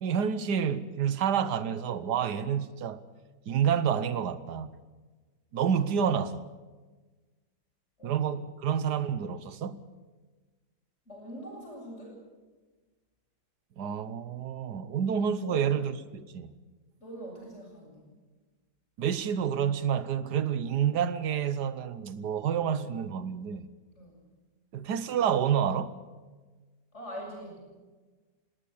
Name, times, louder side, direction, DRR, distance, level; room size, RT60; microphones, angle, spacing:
voice 1, 0.0-3.0 3.5-4.7 5.5-6.4 8.0-9.8 13.8-16.5 19.0-23.7 24.7-25.9, right 8 dB, 90° right, 1.6 m, -29 dB
voice 2, 8.0-8.4 11.1-12.2 15.4-15.8 17.0-18.1 23.9-24.2 26.9-27.6, equal, 40° left, 8.0 m, -43 dB
20.5 x 17.5 x 8.6 m
omnidirectional pair, 1.7 m